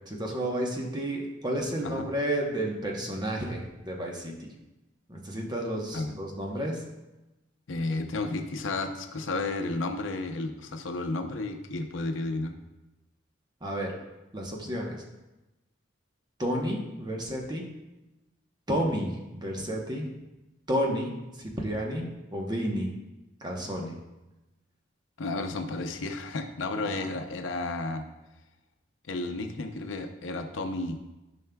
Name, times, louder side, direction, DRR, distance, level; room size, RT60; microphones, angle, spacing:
voice 1, 0.1-4.5 5.1-6.8 13.6-13.9 14.3-15.0 16.4-17.7 18.7-20.1 20.7-22.9 23.4-24.0 26.8-27.1, equal, 20° right, 0 dB, 0.9 m, -31 dB
voice 2, 7.7-12.5 25.2-28.1 29.1-31.0, left 2 dB, 75° left, 5 dB, 0.6 m, -32 dB
13.0 x 5.4 x 2.3 m, 1.0 s
head